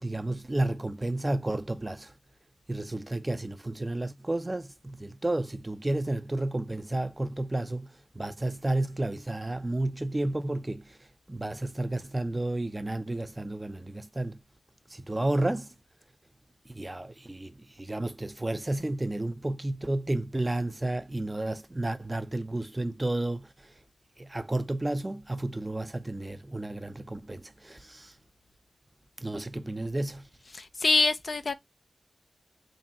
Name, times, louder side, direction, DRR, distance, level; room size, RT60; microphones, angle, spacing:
voice 1, 0.0-2.1 2.7-11.0 11.3-14.4 14.9-15.7 16.7-23.7 24.2-28.1 29.2-30.3, right 1 dB, 25° right, 0.5 m, -32 dB
voice 2, 30.5-31.5, left 3 dB, 60° left, 0.5 m, -25 dB
3.6 x 2.2 x 4.1 m
cardioid pair, 55°, 0 cm